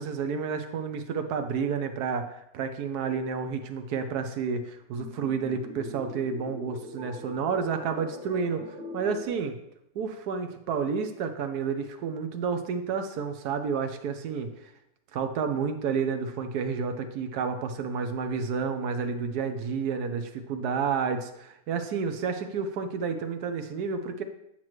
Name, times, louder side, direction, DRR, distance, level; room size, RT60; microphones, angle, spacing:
voice 1, 0.0-9.6 9.9-14.5 15.1-24.2, right 5 dB, 70° right, 8 dB, 1.1 m, -30 dB
sound 1, 4.9-9.3, left 1 dB, ahead, 1.3 m, -42 dB
8.7 x 5.9 x 3.1 m, 0.80 s
omnidirectional pair, 1.9 m